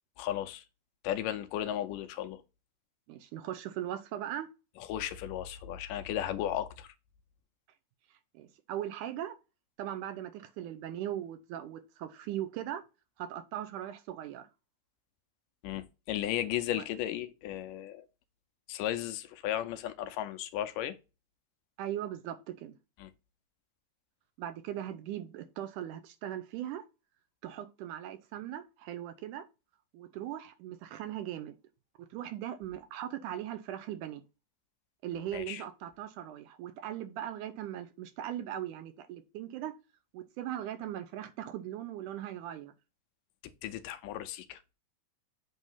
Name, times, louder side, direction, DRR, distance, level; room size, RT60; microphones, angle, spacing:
voice 1, 0.2-0.6 1.0-2.4 4.8-6.9 15.6-18.1 18.7-21.0 23.0-23.1 35.3-35.6 43.6-44.6, left 12 dB, 80° left, 2.2 m, -35 dB
voice 2, 3.1-4.5 8.3-9.4 9.8-12.8 13.2-14.5 21.8-22.8 24.4-26.8 27.4-29.5 29.9-31.6 32.1-34.2 35.0-39.7 40.1-42.7, right 11 dB, 80° right, 2.1 m, -39 dB
8.1 x 2.8 x 5.5 m
omnidirectional pair, 3.8 m